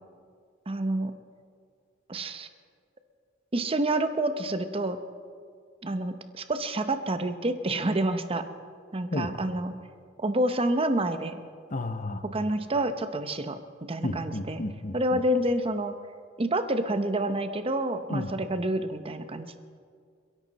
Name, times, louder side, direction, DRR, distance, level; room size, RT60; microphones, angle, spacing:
voice 1, 0.7-1.1 2.1-2.5 3.5-5.0 5.8-8.4 8.9-9.8 10.2-11.4 12.2-13.6 13.9-14.6 14.9-15.9 16.4-19.6, right 1 dB, 30° right, 9 dB, 0.8 m, -28 dB
voice 2, 11.7-12.2 14.0-15.2 18.1-18.3, left 2 dB, 40° left, 9 dB, 0.9 m, -32 dB
30.0 x 11.0 x 4.1 m, 2.1 s
head